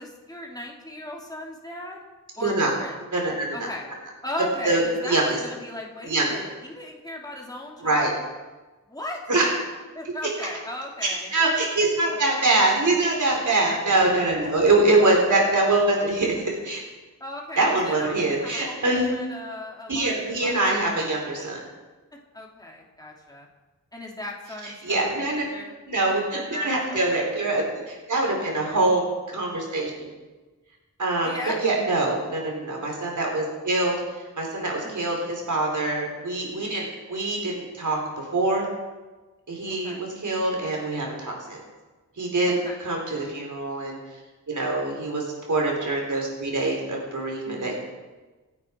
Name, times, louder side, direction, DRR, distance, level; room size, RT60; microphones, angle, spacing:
voice 1, 0.0-2.0 2.4-3.0 3.5-3.9 4.2-8.2 8.9-9.2 9.9-11.3 13.5-13.8 17.2-21.0 21.3-21.4 22.3-23.5 23.9-25.1 25.5-25.8 26.5-27.3 31.2-31.6 34.8-35.1 39.8-40.0 42.5-42.8 44.5-44.8 47.4-47.7, left 1 dB, 10° left, -2 dB, 3.3 m, -37 dB
voice 2, 2.4-2.7 3.1-3.7 4.6-5.4 6.0-6.4 7.8-8.1 9.3-9.5 11.0-16.8 17.6-19.2 19.9-21.6 24.6-25.5 25.9-30.1 31.0-34.0 34.4-38.7 39.5-41.6 42.2-44.0 44.5-47.7, right 2 dB, 65° right, -1 dB, 4.3 m, -24 dB
28.0 x 9.9 x 4.8 m, 1.2 s
wide cardioid pair, 120°, 32 cm